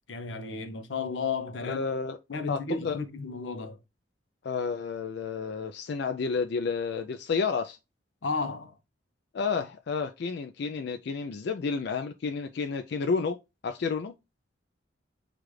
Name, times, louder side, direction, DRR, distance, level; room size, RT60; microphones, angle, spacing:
voice 1, 0.1-1.8 2.3-3.8 8.2-8.7, left 4 dB, 90° left, 0.7 m, -33 dB
voice 2, 1.6-2.2 2.5-3.0 4.4-7.8 9.3-13.4 13.6-14.1, left 5 dB, 60° left, 0.4 m, -30 dB
6.5 x 2.5 x 3.1 m
head